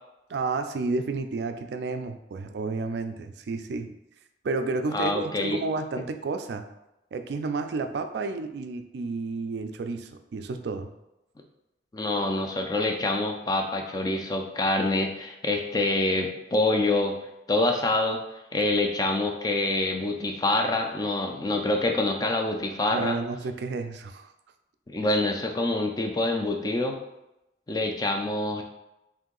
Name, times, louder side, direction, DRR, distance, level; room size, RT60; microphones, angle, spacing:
voice 1, 0.3-4.0 4.4-6.6 7.1-10.9 22.9-24.3, right 3 dB, 65° right, 7 dB, 0.3 m, -31 dB
voice 2, 4.9-5.6 11.9-17.2 17.5-18.2 18.5-23.2 24.9-27.0 27.7-28.6, left 2 dB, 20° left, 3 dB, 0.3 m, -26 dB
3.6 x 2.7 x 3.8 m, 0.91 s
head